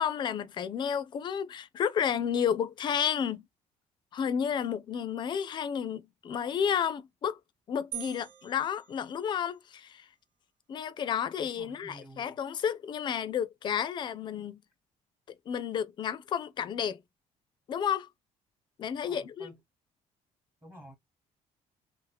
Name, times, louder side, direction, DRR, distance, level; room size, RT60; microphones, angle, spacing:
voice 1, 0.0-3.5 4.1-7.4 7.7-10.1 10.7-14.6 15.5-17.0 17.7-18.1 18.8-19.5, left 8 dB, 35° left, 0.4 m, -31 dB
sound 1, 7.9-9.7, right 15 dB, 80° right, 0.5 m, -44 dB
voice 2, 11.5-12.3 19.0-19.6 20.6-20.9, right 1 dB, 15° right, 1.0 m, -51 dB
2.8 x 2.0 x 3.9 m
cardioid pair, 160°, 13 cm